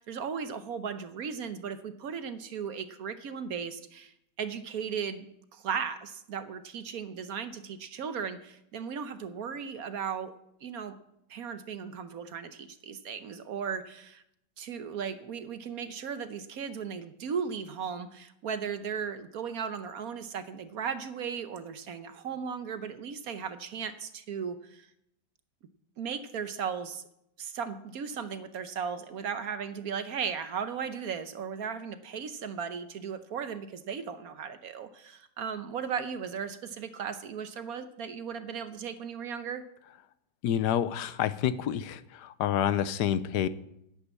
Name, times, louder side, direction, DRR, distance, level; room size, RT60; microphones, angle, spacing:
voice 1, 0.0-10.3 10.6-11.0 11.3-14.2 14.6-24.9 26.0-27.0 27.4-39.6, right 7 dB, 60° right, 10 dB, 1.2 m, -36 dB
voice 2, 40.4-43.5, left 10 dB, 75° left, 15 dB, 1.2 m, -28 dB
10.5 x 8.4 x 8.3 m, 0.79 s
omnidirectional pair, 1.9 m